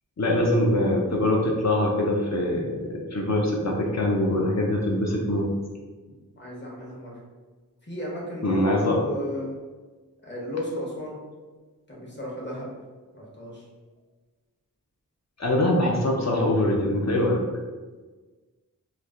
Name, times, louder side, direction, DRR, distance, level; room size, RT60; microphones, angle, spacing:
voice 1, 0.2-5.5 8.4-9.0 15.4-17.4, left 1 dB, 50° left, -2 dB, 0.5 m, -23 dB
voice 2, 6.4-7.1 7.9-9.5 10.2-11.2 11.9-12.7 13.1-13.6, equal, 30° left, -4 dB, 0.9 m, -34 dB
3.2 x 2.3 x 2.4 m, 1.3 s
wide cardioid pair, 40°, 35 cm